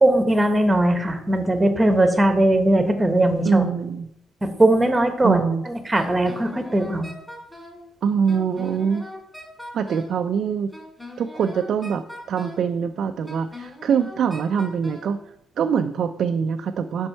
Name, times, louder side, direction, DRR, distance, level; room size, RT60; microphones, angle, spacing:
voice 1, 0.0-3.7 4.4-7.1, right 1 dB, 15° right, 6 dB, 0.9 m, -19 dB
voice 2, 3.5-4.1 5.2-5.6 8.0-9.0 9.7-10.7 11.2-15.2 15.6-17.1, right 7 dB, 65° right, 7 dB, 0.3 m, -24 dB
Wind instrument woodwind instrument, 5.9-7.8 8.3-10.2 10.7-12.7 13.3-15.1, left 1 dB, 5° left, 2.4 m, -40 dB
5.3 x 4.4 x 5.4 m, 0.75 s
cardioid pair, 90°, 0 cm